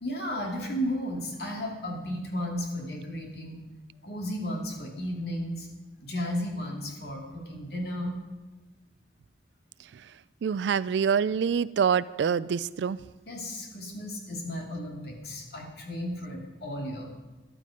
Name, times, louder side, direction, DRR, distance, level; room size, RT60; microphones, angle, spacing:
voice 1, 0.0-3.6 4.0-5.7 6.0-8.2 13.3-17.1, equal, 65° left, 0 dB, 2.6 m, -34 dB
voice 2, 10.4-13.0, right 7 dB, 85° right, 16 dB, 0.3 m, -26 dB
13.5 x 12.0 x 5.1 m, 1.1 s
head